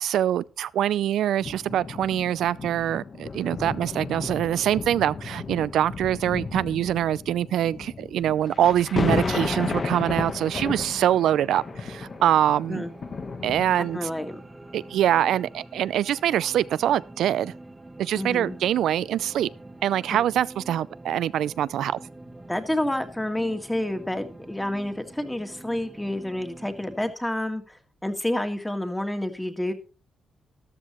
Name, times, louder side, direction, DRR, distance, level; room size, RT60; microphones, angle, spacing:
voice 1, 0.0-12.8 13.4-14.1 14.7-17.5 18.0-19.5 19.8-22.0, right 11 dB, 85° right, 0.5 m, -24 dB
sound 1, 1.4-14.2 14.9-15.0, left 4 dB, 40° left, 1.3 m, -33 dB
voice 2, 9.1-10.2 12.7-12.9 13.9-14.4 18.1-18.6 22.5-27.6 28.0-29.7, left 1 dB, 5° left, 1.8 m, -29 dB
sound 2, 11.1-27.1, right 2 dB, 15° right, 1.1 m, -46 dB
13.5 x 12.5 x 3.1 m
cardioid pair, 110°, 0 cm